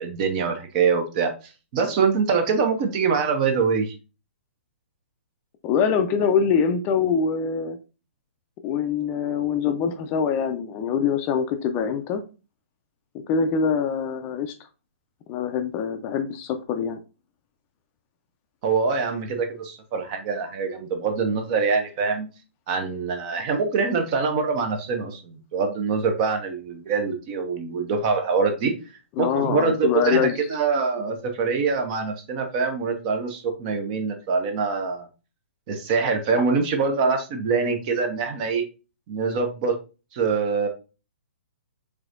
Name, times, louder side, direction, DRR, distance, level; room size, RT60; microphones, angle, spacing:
voice 1, 0.0-3.9 18.6-22.3 22.7-28.7 29.2-35.1 35.7-38.6 39.1-39.8 40.1-40.7, right 5 dB, 40° right, 6 dB, 0.9 m, -24 dB
voice 2, 5.6-7.8 8.6-12.2 13.3-14.5 15.3-17.0 29.2-30.4, left 6 dB, 25° left, 7 dB, 0.5 m, -24 dB
4.8 x 3.4 x 2.5 m, 0.32 s
figure-of-eight pair, 125°, 7 cm